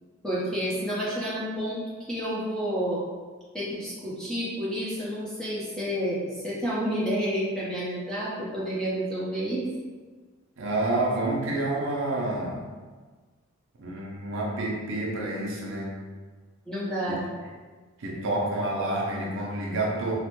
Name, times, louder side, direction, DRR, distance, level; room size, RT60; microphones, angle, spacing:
voice 1, 0.2-1.8 2.1-3.0 3.5-9.7 16.7-17.2, equal, 5° left, -9 dB, 0.7 m, -30 dB
voice 2, 10.6-12.7 13.8-15.9 17.1-17.2 18.0-20.1, right 2 dB, 60° right, -2 dB, 0.5 m, -28 dB
3.1 x 2.1 x 3.0 m, 1.4 s
head